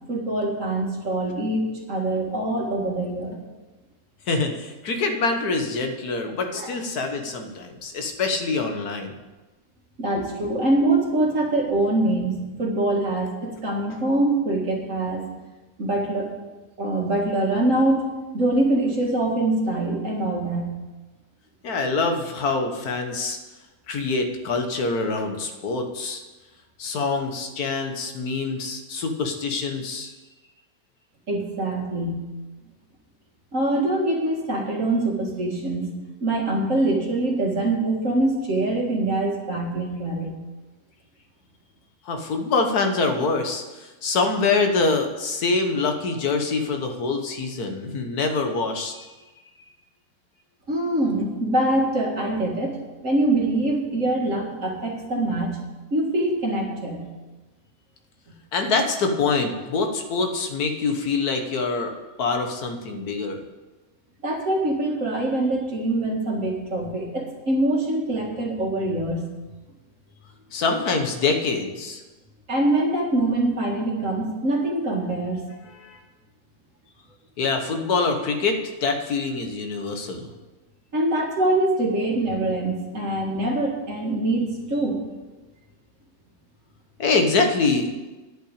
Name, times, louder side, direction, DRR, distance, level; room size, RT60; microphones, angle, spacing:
voice 1, 0.1-3.4 6.5-6.7 10.0-15.2 15.8-16.3 16.8-20.7 31.3-32.2 33.5-35.9 36.2-40.3 50.7-52.8 53.0-55.5 55.9-57.0 64.2-69.2 72.5-75.4 80.9-85.0, right 2 dB, 55° right, -1 dB, 2.2 m, -24 dB
voice 2, 4.3-9.1 10.1-10.3 21.6-23.4 23.9-26.2 26.8-30.1 42.0-49.1 58.5-61.9 62.2-63.4 70.5-72.0 75.6-76.0 77.4-80.3 87.0-87.9, left 4 dB, 85° left, 5 dB, 1.7 m, -25 dB
10.0 x 5.7 x 8.3 m, 1.2 s
omnidirectional pair, 1.6 m